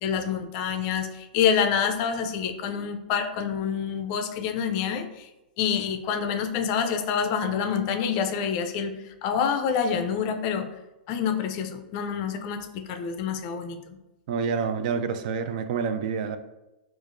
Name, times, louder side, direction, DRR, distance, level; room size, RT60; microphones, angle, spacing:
voice 1, 0.0-5.3 5.6-9.0 9.2-10.7 11.1-14.0, left 7 dB, 40° left, 6 dB, 0.4 m, -27 dB
voice 2, 14.3-16.4, right 6 dB, 55° right, 9 dB, 0.3 m, -28 dB
4.5 x 2.4 x 2.5 m, 0.98 s
hypercardioid pair, 140°, 5 cm